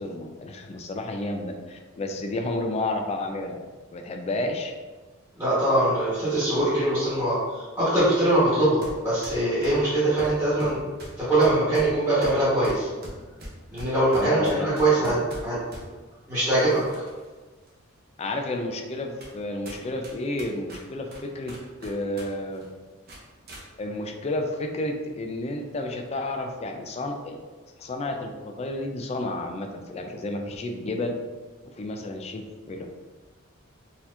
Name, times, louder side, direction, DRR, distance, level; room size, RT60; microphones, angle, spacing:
voice 1, 0.0-3.6 3.9-4.7 14.1-14.7 15.0-15.1 18.2-21.5 21.8-22.6 23.8-27.4 27.8-31.1 31.6-32.9, left 2 dB, 30° left, 3 dB, 0.3 m, -31 dB
voice 2, 5.4-10.8 11.2-12.9 13.7-15.6 16.3-16.8, right 1 dB, 10° right, -11 dB, 1.3 m, -22 dB
sound 1, 8.8-9.0 9.2-15.9 16.5-17.3 17.7-17.8 18.5-18.6 19.2-19.4 19.7-22.3 22.5-22.7 23.1-23.6, right 1 dB, 45° right, 0.8 m, -41 dB
4.0 x 2.8 x 2.6 m, 1.3 s
head